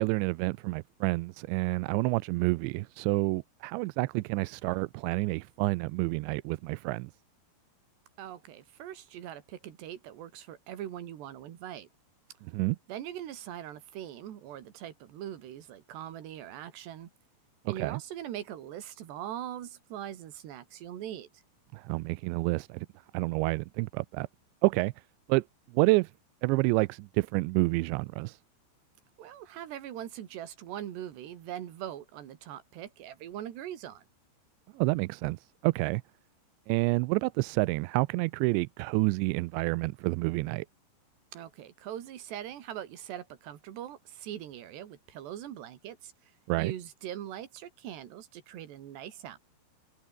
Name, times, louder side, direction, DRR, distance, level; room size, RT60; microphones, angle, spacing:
voice 1, 0.0-7.1 12.5-12.8 17.7-18.0 21.7-22.9 23.1-24.3 24.6-24.9 25.3-25.4 25.7-26.1 26.4-28.4 34.7-36.0 36.7-40.7 46.5-46.7, right 23 dB, 85° right, 2.7 m, -28 dB
voice 2, 8.2-11.9 12.9-17.1 17.7-21.4 29.2-34.1 41.3-46.3 46.6-49.4, right 11 dB, 65° right, 4.1 m, -41 dB
omnidirectional pair, 5.5 m